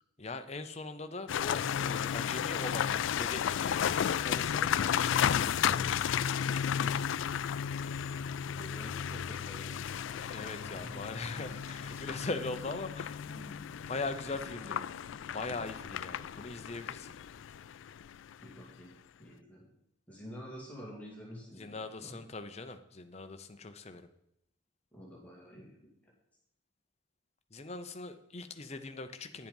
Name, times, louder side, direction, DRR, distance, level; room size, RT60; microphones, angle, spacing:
voice 1, 0.2-5.8 10.3-13.3 13.9-14.9 15.3-17.1 21.6-24.1 27.5-29.5, left 3 dB, 30° left, 9 dB, 0.7 m, -41 dB
sound 1, 1.3-18.4, left 8 dB, 70° left, 0.3 m, -33 dB
voice 2, 8.5-10.3 10.8-11.0 18.4-18.9 19.2-19.7 20.1-22.2 24.9-25.8 26.0-26.1, equal, 5° left, -4 dB, 2.3 m, -49 dB
sound 2, 8.6-17.5, left 1 dB, 35° right, 2.7 m, -58 dB
10.5 x 7.6 x 5.4 m, 0.80 s
head